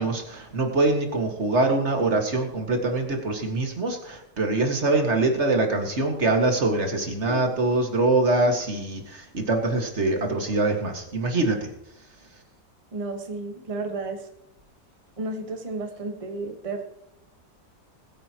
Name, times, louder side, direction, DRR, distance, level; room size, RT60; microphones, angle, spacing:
voice 1, 0.0-11.7, right 2 dB, 40° right, 3 dB, 2.1 m, -24 dB
voice 2, 12.9-14.3 15.2-16.8, right 2 dB, 20° right, 4 dB, 1.4 m, -32 dB
21.5 x 9.5 x 3.0 m, 0.84 s
omnidirectional pair, 1.8 m